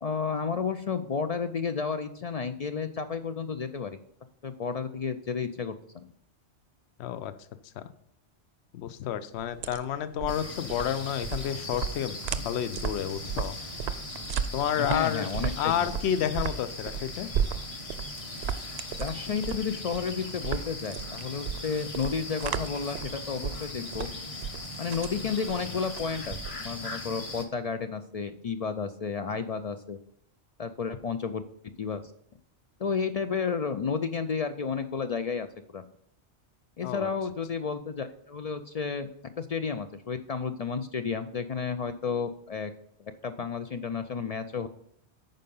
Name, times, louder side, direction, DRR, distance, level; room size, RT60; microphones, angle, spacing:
voice 1, 0.0-4.0 4.4-6.1 14.8-15.9 19.0-24.1 24.8-30.0 30.6-31.4 31.8-32.0 32.8-35.5 35.7-35.8 36.8-39.1 39.4-42.7 43.0-44.7, left 5 dB, 55° left, 9 dB, 0.4 m, -32 dB
voice 2, 7.0-7.3 7.8-7.9 8.7-13.5 14.5-15.3 15.6-17.3 36.8-37.1, left 10 dB, 75° left, 13 dB, 0.9 m, -30 dB
sound 1, 9.4-26.8, right 8 dB, 70° right, 0.8 m, -35 dB
sound 2, 10.3-27.5, left 2 dB, 30° left, 1.1 m, -39 dB
9.1 x 5.5 x 5.3 m, 0.69 s
omnidirectional pair, 1.2 m